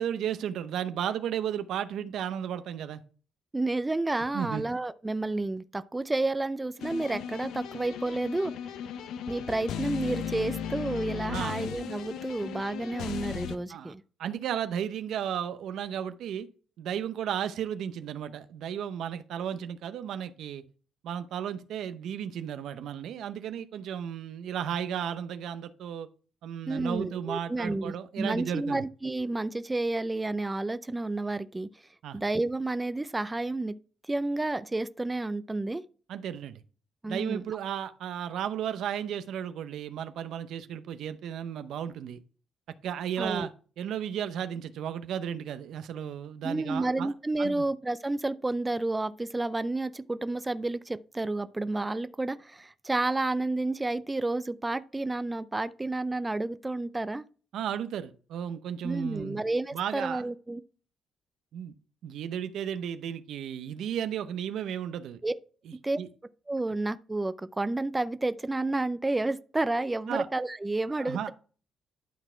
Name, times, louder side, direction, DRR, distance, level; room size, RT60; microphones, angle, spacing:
voice 1, 0.0-3.0 4.3-4.6 11.3-11.5 13.7-13.9 14.2-16.5 16.8-20.6 21.0-26.1 26.4-28.8 32.0-32.2 36.1-36.6 37.1-42.2 42.8-43.5 43.8-47.1 47.4-47.7 57.5-59.4 59.7-60.2 61.5-61.7 62.0-65.2 65.7-66.1 70.1-70.3 71.0-71.3, right 9 dB, 75° right, 0.7 m, -34 dB
voice 2, 3.5-8.5 9.3-14.0 26.7-31.7 32.1-33.7 34.1-35.8 37.0-37.6 43.2-43.5 46.4-57.3 58.8-60.6 65.2-65.3 65.7-66.0 66.5-71.3, right 2 dB, 15° right, 0.4 m, -30 dB
sound 1, 6.8-13.6, left 8 dB, 85° left, 0.7 m, -36 dB
11.5 x 4.1 x 4.4 m
cardioid pair, 90°, 0 cm